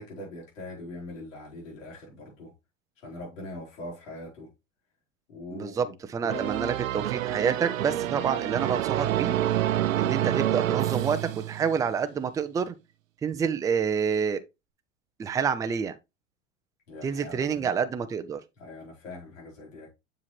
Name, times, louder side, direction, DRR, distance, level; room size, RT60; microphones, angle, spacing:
voice 1, 0.0-2.5 3.0-4.5 5.3-5.9 6.2-6.5 16.9-17.8 18.6-19.9, left 1 dB, 75° left, 4.5 m, -42 dB
voice 2, 5.5-9.4 10.0-12.8 13.2-14.4 15.2-15.9 17.0-18.4, right 6 dB, 10° right, 0.4 m, -28 dB
sound 1, 6.3-11.9, right 13 dB, 85° right, 0.6 m, -28 dB
7.3 x 4.8 x 3.1 m
hypercardioid pair, 105°, 39 cm